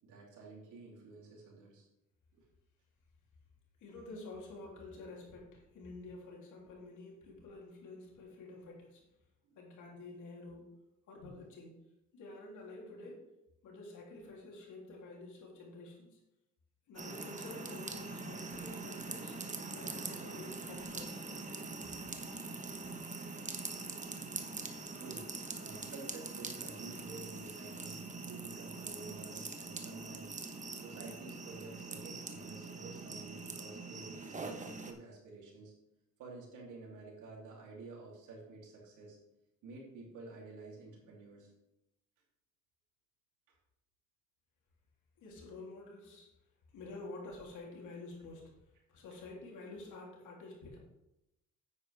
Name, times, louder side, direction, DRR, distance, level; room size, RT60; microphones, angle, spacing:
voice 1, 0.0-1.9 2.3-2.5 9.4-9.6 23.9-24.0 24.4-24.5 25.0-30.4 30.8-35.7 36.2-39.2 39.6-41.5 43.5-43.6 49.1-49.2, right 3 dB, 80° right, -2 dB, 3.4 m, -51 dB
voice 2, 3.8-9.1 9.6-10.7 11.1-11.8 12.1-13.3 13.6-16.2 16.9-19.4 19.7-21.2 45.2-46.3 46.7-48.4 48.9-50.8, left 2 dB, 80° left, -2 dB, 3.3 m, -49 dB
sound 1, 16.9-34.9, right 3 dB, 25° right, 1.3 m, -43 dB
9.3 x 9.1 x 3.6 m, 0.88 s
cardioid pair, 90°, 30 cm